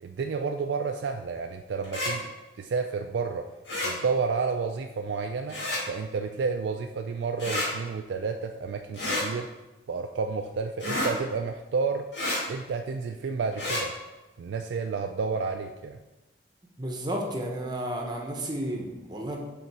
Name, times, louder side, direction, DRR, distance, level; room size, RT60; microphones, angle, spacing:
voice 1, 0.0-3.5 3.8-5.6 5.9-9.6 9.9-12.1 12.5-14.0 14.4-16.0, right 5 dB, 80° right, 4 dB, 0.3 m, -31 dB
sound 1, 1.8-2.1 3.7-3.9 5.5-5.8 7.4-7.7 8.9-9.3 10.8-11.1 12.1-12.4 13.5-13.8, left 1 dB, 80° left, 1.9 m, -29 dB
voice 2, 16.8-19.4, right 1 dB, 25° right, 1 dB, 0.8 m, -32 dB
6.7 x 3.8 x 4.7 m, 1.0 s
head